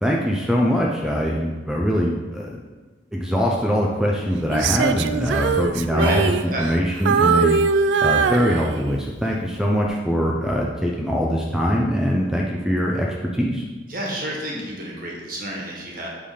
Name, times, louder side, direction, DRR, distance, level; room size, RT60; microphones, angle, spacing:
voice 1, 0.0-2.6 3.1-6.3 6.6-7.6 8.0-13.6, equal, 5° right, -2 dB, 0.5 m, -22 dB
Female singing, 4.5-6.8 7.1-9.1 9.6-9.9, right 5 dB, 70° right, 0.3 m, -21 dB
voice 2, 5.9-6.7 13.9-16.1, right 1 dB, 50° right, -2 dB, 1.4 m, -29 dB
7.7 x 3.4 x 5.0 m, 1.3 s
head